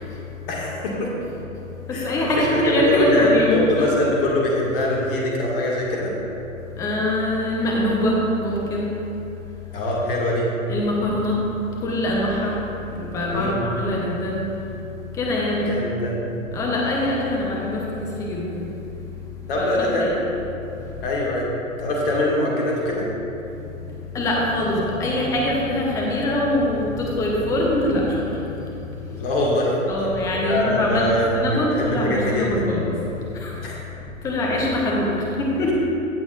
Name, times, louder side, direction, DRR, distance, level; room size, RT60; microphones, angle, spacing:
voice 1, 0.5-1.1 1.9-2.1 2.4-6.1 9.7-10.5 13.3-13.6 15.7-16.2 19.5-20.1 21.0-21.5 21.8-23.1 29.1-29.7 30.4-32.7 33.6-33.8, left 1 dB, 45° left, -3 dB, 1.8 m, -23 dB
voice 2, 1.9-3.9 6.8-8.9 10.7-11.4 11.8-12.6 12.9-14.4 15.2-15.8 16.5-18.6 19.6-19.7 20.0-20.1 24.1-28.2 29.9-33.0 33.3-33.5 34.2-35.8, left 1 dB, 10° left, -3 dB, 0.7 m, -23 dB
16.5 x 6.3 x 2.4 m, 2.9 s
figure-of-eight pair, 115°, 41 cm